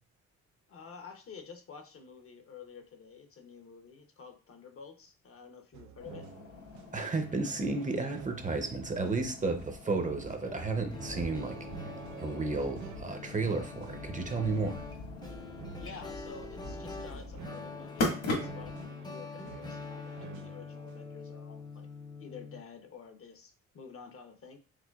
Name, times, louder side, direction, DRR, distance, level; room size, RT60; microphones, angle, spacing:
voice 1, 0.7-6.3 15.8-21.9 22.2-24.6, left 5 dB, 45° left, 0.8 m, -50 dB
sound 1, 5.7-21.2, right 7 dB, 70° right, 0.5 m, -50 dB
sound 2, 6.0-18.8, left 2 dB, 70° left, 1.8 m, -41 dB
voice 2, 6.9-11.6 12.2-14.9, right 3 dB, 25° right, 0.6 m, -32 dB
sound 3, 10.4-22.6, left 4 dB, 15° left, 0.5 m, -45 dB
4.8 x 3.6 x 2.3 m
cardioid pair, 90°, 30 cm